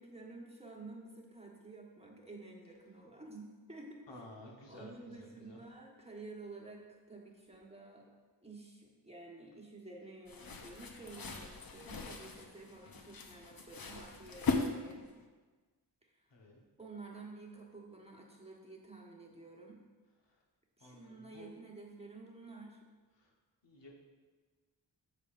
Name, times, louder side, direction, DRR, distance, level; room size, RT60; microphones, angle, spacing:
voice 1, 0.0-4.2 4.7-8.1 8.4-15.1 16.0-16.3 16.8-19.8 20.8-22.8, right 3 dB, 15° right, -1 dB, 1.4 m, -51 dB
voice 2, 4.1-4.9 5.2-5.6 14.7-14.8 16.3-16.6 20.8-21.5 23.2-23.3 23.6-23.9, left 2 dB, 75° left, -1 dB, 1.4 m, -54 dB
sound 1, 10.3-15.2, left 3 dB, 55° left, 0.8 m, -39 dB
8.2 x 6.8 x 2.6 m, 1.4 s
cardioid pair, 50°, 44 cm